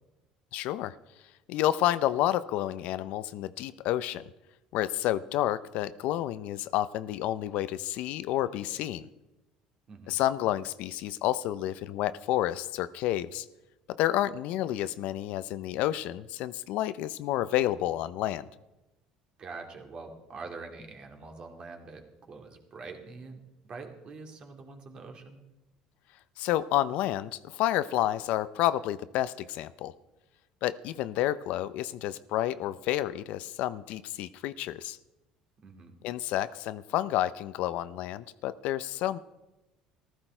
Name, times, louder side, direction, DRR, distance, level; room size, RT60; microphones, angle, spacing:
voice 1, 0.5-0.9 1.5-4.2 4.7-9.1 10.1-13.5 13.9-18.4 26.4-29.9 30.6-35.0 36.0-39.2, left 13 dB, 70° left, 15 dB, 0.6 m, -30 dB
voice 2, 9.9-10.2 19.4-25.4 35.6-35.9, right 4 dB, 40° right, 3 dB, 2.5 m, -45 dB
15.0 x 13.5 x 4.5 m, 1.0 s
supercardioid pair, 105°, 2 cm